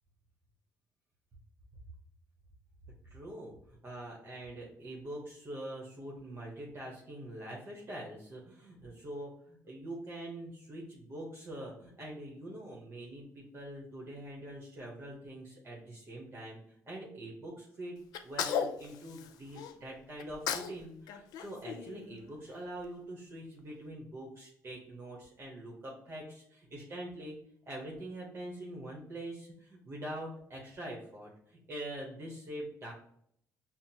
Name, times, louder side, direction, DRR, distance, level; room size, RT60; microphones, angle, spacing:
voice 1, 3.1-18.0 18.2-27.4 27.6-32.9, right 1 dB, 40° right, -3 dB, 1.0 m, -44 dB
Sneeze, 18.1-19.7 20.2-20.8 21.1-22.5, left 8 dB, 85° left, 0.4 m, -36 dB
5.7 x 2.0 x 2.8 m, 0.69 s
cardioid pair, 100°, 7 cm